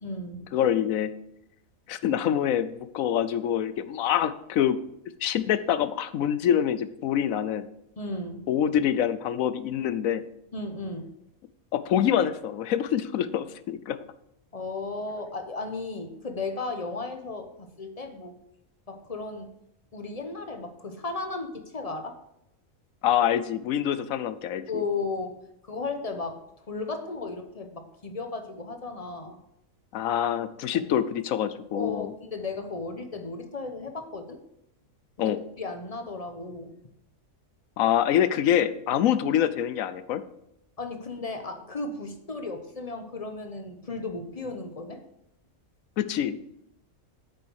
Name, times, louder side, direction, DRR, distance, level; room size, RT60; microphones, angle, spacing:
voice 1, 0.0-0.5 8.0-8.5 10.5-11.1 14.5-18.3 18.9-19.5 19.9-22.2 24.7-29.4 31.7-34.4 35.2-36.8 40.8-45.0, left 3 dB, 30° left, 6 dB, 0.9 m, -35 dB
voice 2, 0.5-1.1 1.9-4.8 5.2-7.7 8.5-10.2 11.7-14.0 23.0-24.7 29.9-32.1 35.2-35.4 37.8-40.2 46.0-46.4, left 10 dB, 75° left, 13 dB, 1.0 m, -25 dB
8.1 x 7.0 x 4.7 m, 0.80 s
omnidirectional pair, 1.5 m